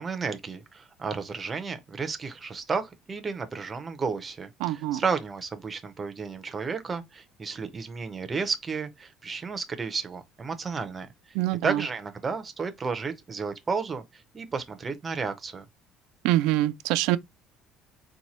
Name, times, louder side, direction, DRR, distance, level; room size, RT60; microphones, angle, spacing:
voice 1, 0.0-11.1 11.6-15.7, right 5 dB, 20° right, 0.5 m, -32 dB
voice 2, 4.6-5.0 11.3-11.8 16.2-17.2, right 15 dB, 85° right, 0.3 m, -25 dB
4.1 x 2.2 x 2.9 m
cardioid pair, 165°, 0 cm